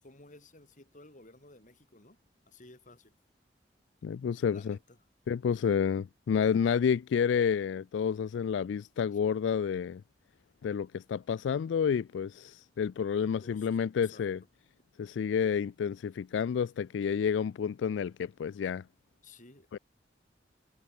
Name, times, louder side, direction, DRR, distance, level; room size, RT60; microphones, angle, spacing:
voice 1, 0.0-2.2 2.5-3.2 4.4-5.0 13.4-14.3 19.2-19.8, left 2 dB, 45° left, 5.1 m, -55 dB
voice 2, 4.0-4.8 5.3-10.0 10.6-14.4 15.0-18.8 19.7-19.8, left 7 dB, 80° left, 0.3 m, -30 dB
head